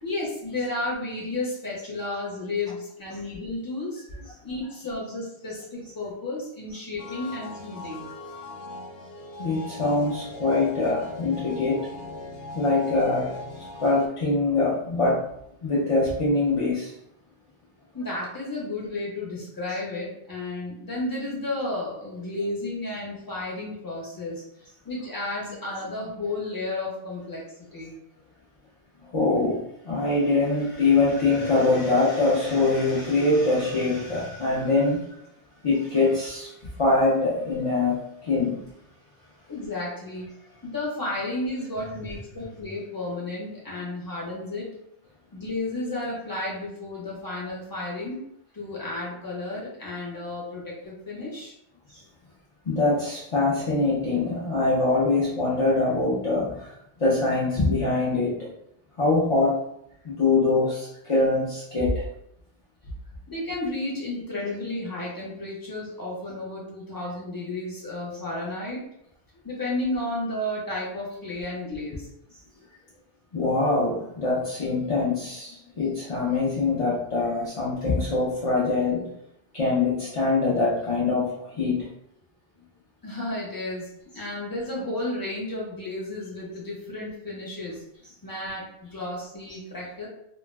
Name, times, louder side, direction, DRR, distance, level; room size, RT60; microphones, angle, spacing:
voice 1, 0.0-4.0 4.4-8.1 17.9-24.4 24.8-27.4 27.7-27.9 39.5-40.3 40.6-44.7 45.3-48.2 48.5-51.5 63.3-68.8 69.4-72.1 83.0-87.8 88.2-90.1, left 2 dB, 20° left, -5 dB, 0.8 m, -32 dB
sound 1, 7.0-14.1, left 2 dB, 75° left, 0.9 m, -40 dB
voice 2, 9.4-11.9 12.5-15.2 15.6-16.9 18.0-18.1 19.7-19.8 29.1-35.1 35.6-36.5 36.8-38.6 41.8-42.0 51.9-52.0 52.6-58.5 59.0-59.6 60.0-62.1 73.3-79.1 79.5-81.9, left 3 dB, 45° left, -7 dB, 0.4 m, -24 dB
2.4 x 2.2 x 3.2 m, 0.77 s
omnidirectional pair, 1.2 m